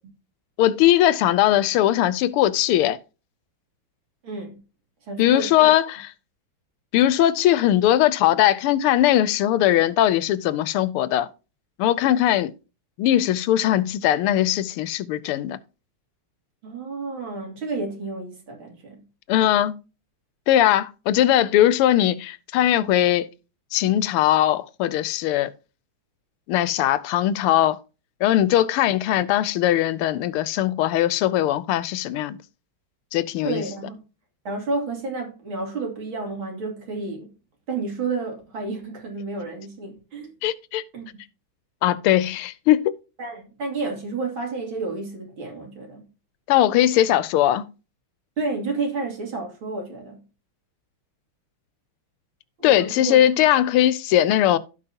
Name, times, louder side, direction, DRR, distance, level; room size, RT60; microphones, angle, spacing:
voice 1, 0.6-3.0 5.2-6.0 6.9-11.3 11.8-12.5 13.0-15.6 19.3-19.7 20.5-23.3 23.7-25.5 26.5-27.8 28.2-32.4 33.1-33.6 40.4-40.8 41.8-42.9 46.5-47.6 52.6-54.6, left 12 dB, 85° left, 1.6 m, -20 dB
voice 2, 4.2-4.6 5.0-5.8 16.6-19.0 33.4-34.0 34.5-37.3 37.7-40.3 40.9-41.1 43.2-46.1 48.4-50.2 52.6-53.4, right 3 dB, 65° right, 3.6 m, -31 dB
16.0 x 5.3 x 2.8 m
omnidirectional pair, 2.4 m